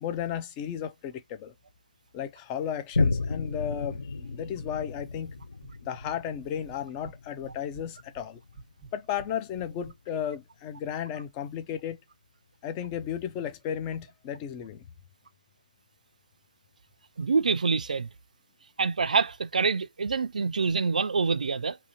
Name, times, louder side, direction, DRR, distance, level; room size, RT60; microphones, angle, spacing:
voice 1, 0.0-1.5 2.1-5.4 5.8-8.4 8.9-12.0 12.6-14.8, left 9 dB, 15° left, 0.3 m, -34 dB
Boom, 2.9-9.9 10.4-10.5, left 3 dB, 85° left, 0.4 m, -33 dB
sound 1, 4.6-5.1 5.4-6.1 6.4-7.2 7.5-10.0, right 4 dB, 10° right, 0.9 m, -50 dB
voice 2, 17.2-18.1 18.8-21.8, right 4 dB, 75° right, 0.3 m, -26 dB
2.7 x 2.7 x 2.7 m
hypercardioid pair, 160°, 4 cm